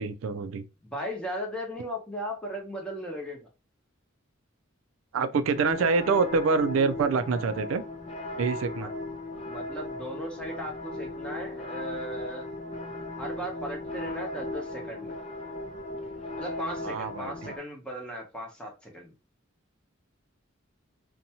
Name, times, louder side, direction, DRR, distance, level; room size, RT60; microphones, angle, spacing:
voice 1, 0.0-0.6 5.1-7.8 8.4-8.9 16.8-17.5, right 4 dB, 80° right, 0.3 m, -26 dB
voice 2, 0.8-3.5 8.8-8.9 9.4-12.5 13.2-15.2 16.4-19.1, equal, 5° left, 0.8 m, -37 dB
sound 1, 5.5-17.6, left 2 dB, 30° left, 0.4 m, -37 dB
2.6 x 2.2 x 2.8 m
head